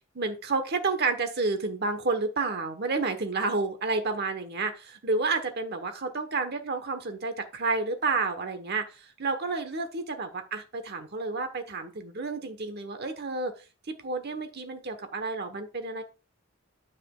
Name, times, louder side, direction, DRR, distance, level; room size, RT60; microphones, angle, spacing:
voice 1, 0.1-13.5 13.9-16.0, right 3 dB, 55° right, 7 dB, 1.2 m, -30 dB
9.3 x 7.6 x 2.4 m, 0.32 s
head